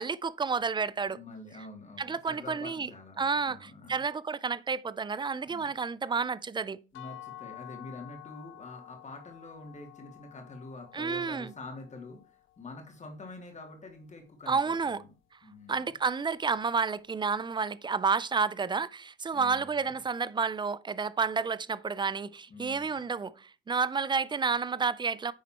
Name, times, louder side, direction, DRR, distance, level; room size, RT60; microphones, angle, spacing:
voice 1, 0.0-1.2 2.0-2.9 3.2-6.8 10.9-11.5 14.5-15.0 15.7-25.3, right 5 dB, 25° right, 0.5 m, -30 dB
voice 2, 1.1-4.0 5.4-5.7 6.9-15.1 15.4-15.9 19.3-19.9 22.5-23.0, left 3 dB, 35° left, 2.6 m, -46 dB
sound 1, 6.9-12.8, left 14 dB, 80° left, 0.5 m, -50 dB
9.6 x 4.1 x 4.3 m
cardioid pair, 90°, 20 cm